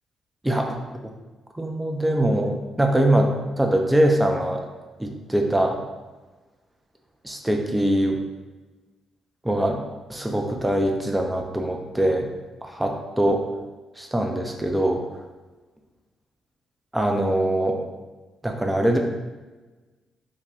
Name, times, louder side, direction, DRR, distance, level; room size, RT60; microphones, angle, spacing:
voice 1, 0.4-1.1 1.5-4.6 5.0-5.8 7.2-8.2 9.4-9.8 10.1-12.3 12.6-13.4 14.0-15.0 16.9-17.8 18.4-19.0, right 1 dB, 10° right, 2 dB, 0.5 m, -23 dB
2.7 x 2.1 x 3.3 m, 1.2 s
hypercardioid pair, 40°, 0 cm